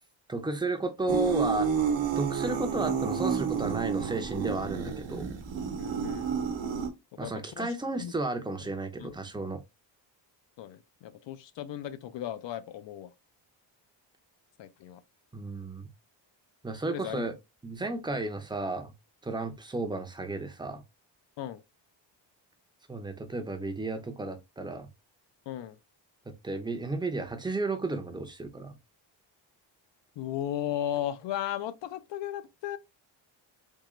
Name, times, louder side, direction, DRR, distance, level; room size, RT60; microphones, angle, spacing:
voice 1, 0.3-1.7 2.2-5.3 7.2-9.6 15.3-15.9 16.6-17.3 17.6-18.9 19.2-20.8 22.9-24.9 26.3-28.8, right 2 dB, 10° right, 0.5 m, -33 dB
sound 1, 1.1-6.9, right 6 dB, 75° right, 0.9 m, -30 dB
voice 2, 5.8-6.3 7.2-8.1 9.0-9.2 10.6-13.1 14.6-15.0 16.9-17.3 18.1-18.3 21.4-21.6 25.5-25.8 30.2-32.8, left 11 dB, 70° left, 0.5 m, -36 dB
3.7 x 2.8 x 3.1 m
wide cardioid pair, 165°, 45 cm